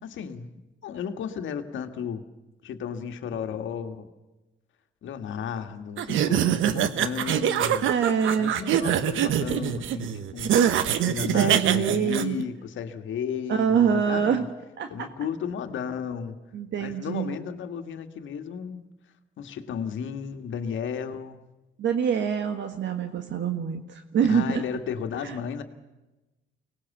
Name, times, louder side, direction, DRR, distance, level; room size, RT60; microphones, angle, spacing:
voice 1, 0.0-2.2 2.6-4.1 5.0-7.9 8.4-10.5 11.0-14.5 14.9-16.4 16.8-18.9 19.4-21.4 24.3-25.6, left 7 dB, 75° left, 7 dB, 1.9 m, -34 dB
sound 1, 6.0-12.2, right 10 dB, 80° right, 1.2 m, -24 dB
voice 2, 7.9-8.5 11.3-12.4 13.5-14.4 14.8-15.1 16.5-17.4 21.8-24.6 25.2-25.4, right 7 dB, 65° right, 7 dB, 1.6 m, -25 dB
24.0 x 19.0 x 7.3 m, 1.1 s
cardioid pair, 90°, 20 cm